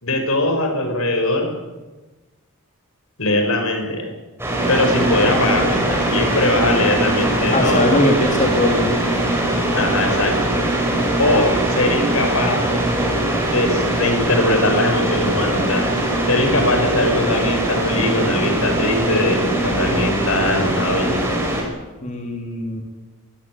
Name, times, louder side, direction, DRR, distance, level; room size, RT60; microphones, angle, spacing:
voice 1, 0.0-1.5 3.2-4.1 4.7-7.9 9.7-10.4 11.2-12.6 13.5-15.8 16.3-21.2, left 2 dB, 75° left, 4 dB, 5.6 m, -20 dB
sound 1, 4.4-21.6, right 1 dB, 10° right, 5.6 m, -21 dB
voice 2, 7.5-9.0 22.0-22.8, left 1 dB, 35° left, 1 dB, 3.0 m, -20 dB
22.5 x 15.0 x 9.7 m, 1.2 s
head